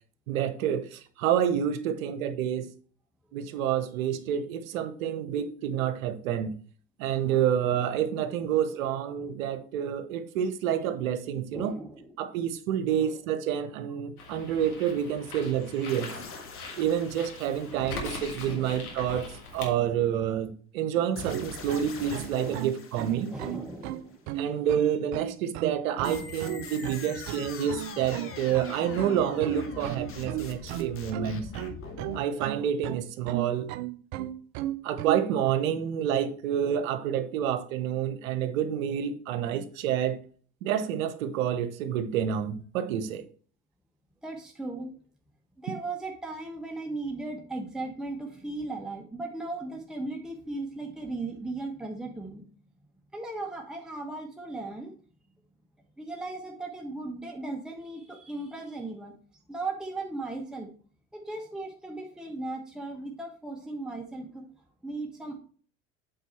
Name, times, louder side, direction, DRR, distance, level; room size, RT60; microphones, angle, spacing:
voice 1, 0.3-2.7 3.3-6.5 7.0-11.7 12.2-16.1 16.8-19.3 19.5-23.3 24.4-31.5 32.1-33.7 34.8-40.2 40.6-43.2, right 9 dB, 65° right, 1.0 m, -28 dB
voice 2, 11.5-12.1 12.9-13.2 16.7-16.9 17.7-18.8 22.3-22.7 23.1-24.2 31.4-31.5 44.2-44.9 45.6-52.4 53.1-54.9 56.0-59.1 59.5-60.7 61.1-64.5 64.8-65.4, right 2 dB, ahead, 1.1 m, -37 dB
Bird, 14.2-19.7, left 3 dB, 80° left, 1.7 m, -41 dB
sound 1, 15.9-18.5 21.2-23.9 26.0-32.2, left 5 dB, 30° left, 1.4 m, -43 dB
sound 2, 20.9-35.2, right 14 dB, 50° right, 0.5 m, -35 dB
8.2 x 4.3 x 4.3 m
figure-of-eight pair, 70°, 44 cm